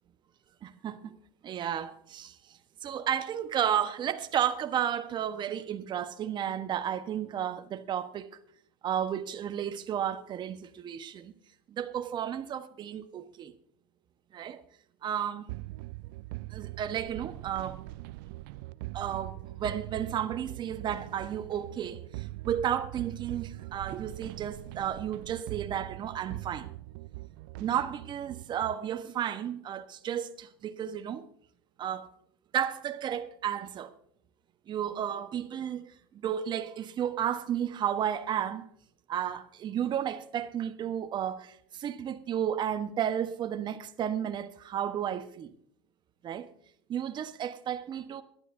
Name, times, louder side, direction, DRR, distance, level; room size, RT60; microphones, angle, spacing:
voice 1, 0.6-1.1 1.4-2.4 2.8-8.3 8.8-11.3 11.7-13.5 14.3-14.6 15.0-15.5 16.5-17.8 18.9-26.7 27.6-31.2 31.8-32.1 32.5-33.9 34.7-38.6 39.1-45.5 46.2-46.5 46.9-48.2, right 9 dB, 35° right, 1.2 m, -33 dB
sound 1, 15.5-28.8, right 20 dB, 65° right, 0.4 m, -42 dB
22.5 x 11.0 x 2.7 m
hypercardioid pair, 90°, 13 cm